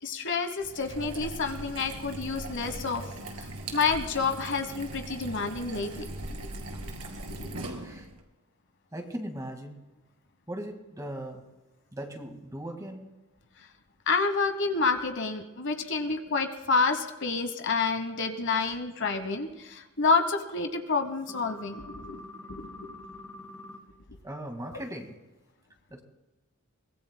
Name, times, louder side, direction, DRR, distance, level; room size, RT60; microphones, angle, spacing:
voice 1, 0.0-3.0 3.4-6.1 6.4-6.9 7.3-7.6 14.1-22.2 22.5-23.0, left 4 dB, 55° left, 7 dB, 1.1 m, -29 dB
sound 1, 0.6-8.2, right 2 dB, 80° right, 2.3 m, -40 dB
voice 2, 7.8-8.1 8.9-9.8 10.5-11.4 11.9-13.0 22.0-22.3 24.2-25.2 25.9-26.0, right 1 dB, 15° right, 4 dB, 1.8 m, -39 dB
sound 2, 21.3-23.8, left 2 dB, 10° left, 2.4 m, -45 dB
23.5 x 19.5 x 2.2 m, 1.1 s
head